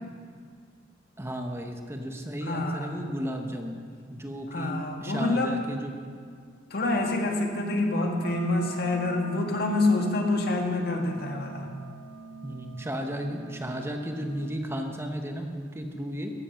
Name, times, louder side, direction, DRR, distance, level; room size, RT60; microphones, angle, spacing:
voice 1, 1.2-3.8 4.1-4.8 5.0-5.9 12.4-16.3, equal, 15° right, 3 dB, 1.0 m, -34 dB
voice 2, 2.4-3.0 4.5-5.6 6.7-11.7, left 2 dB, 60° left, 2 dB, 1.7 m, -27 dB
sound 1, 8.2-14.6, right 5 dB, 70° right, 1.0 m, -44 dB
15.0 x 10.5 x 5.8 m, 2.1 s
head